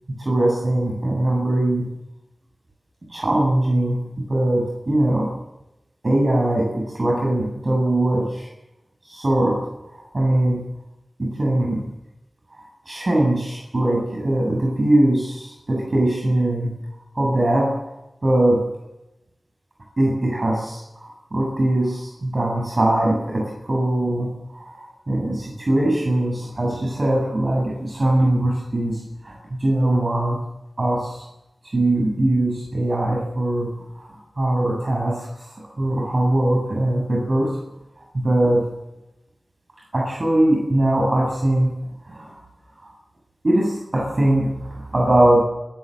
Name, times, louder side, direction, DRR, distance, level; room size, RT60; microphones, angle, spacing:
voice 1, 0.2-1.9 3.1-4.0 4.3-5.3 6.0-8.5 9.1-9.6 9.9-10.6 11.2-11.8 12.9-16.7 17.1-17.7 18.2-18.6 20.0-30.4 30.8-31.2 31.7-37.6 38.1-38.6 39.9-41.7 42.1-42.3 42.8-42.9 43.4-45.4, right 1 dB, 50° right, -2 dB, 7.6 m, -21 dB
27.5 x 15.5 x 7.9 m, 0.93 s
wide cardioid pair, 70°, 0 cm